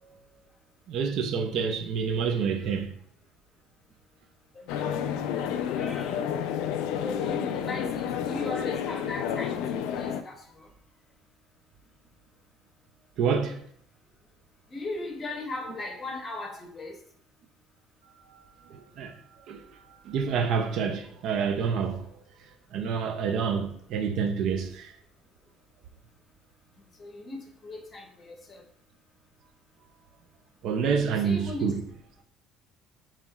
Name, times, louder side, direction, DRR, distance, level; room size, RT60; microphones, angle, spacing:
voice 1, 0.9-2.9 13.2-13.6 18.3-18.4 18.7-19.2 19.5-22.1 22.7-24.9 30.6-31.8, right 6 dB, 55° right, 0.4 m, -28 dB
sound 1, 4.7-10.2, left 8 dB, 90° left, 0.3 m, -30 dB
voice 2, 5.7-6.2 7.0-10.7 14.7-17.0 27.0-27.4 27.6-28.6 31.1-31.7, left 2 dB, 25° left, 0.7 m, -38 dB
5.4 x 3.0 x 2.3 m
cardioid pair, 170°, 0 cm